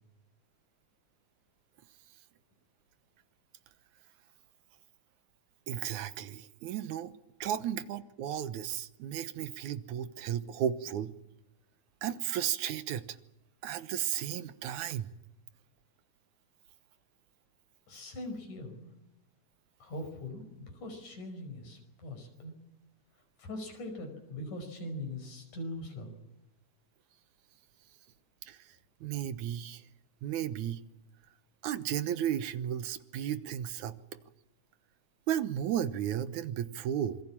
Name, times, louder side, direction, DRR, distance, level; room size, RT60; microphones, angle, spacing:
voice 1, 5.7-7.1 7.4-11.1 12.0-13.2 13.6-15.1 28.5-28.7 29.0-29.8 30.2-30.8 31.6-34.0 35.3-37.2, right 10 dB, 75° right, 13 dB, 2.4 m, -34 dB
voice 2, 17.9-18.9 19.8-22.6 23.4-26.2, left 1 dB, 75° left, 5 dB, 6.7 m, -41 dB
26.5 x 22.0 x 7.3 m, 0.91 s
omnidirectional pair, 3.5 m